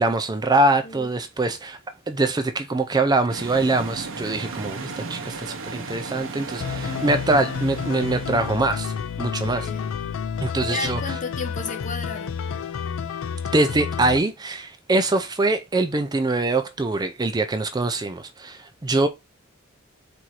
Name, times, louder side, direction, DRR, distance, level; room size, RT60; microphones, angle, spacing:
voice 1, 0.0-1.8 2.1-9.7 10.4-11.0 13.5-19.1, right 2 dB, 20° right, 0.4 m, -23 dB
sound 1, 3.3-8.9, right 3 dB, 65° right, 0.8 m, -35 dB
sound 2, 6.6-14.2, left 6 dB, 75° left, 0.4 m, -30 dB
voice 2, 9.4-10.0 10.7-12.4, left 3 dB, 40° left, 0.7 m, -33 dB
4.6 x 2.6 x 4.2 m
head